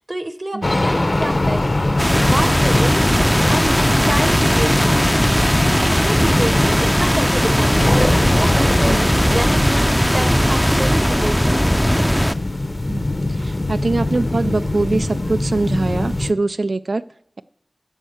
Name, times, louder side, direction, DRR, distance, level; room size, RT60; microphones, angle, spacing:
voice 1, 0.1-1.9 2.3-5.2 5.6-9.8 10.1-12.2, right 1 dB, 35° right, 10 dB, 0.8 m, -28 dB
sound 1, 0.6-16.3, left 2 dB, 45° left, 0.7 m, -22 dB
sound 2, 2.0-12.3, equal, ahead, 0.4 m, -18 dB
voice 2, 13.4-17.0, right 3 dB, 85° right, 13 dB, 0.3 m, -22 dB
10.5 x 4.5 x 7.9 m, 0.75 s
wide cardioid pair, 60°, 0 cm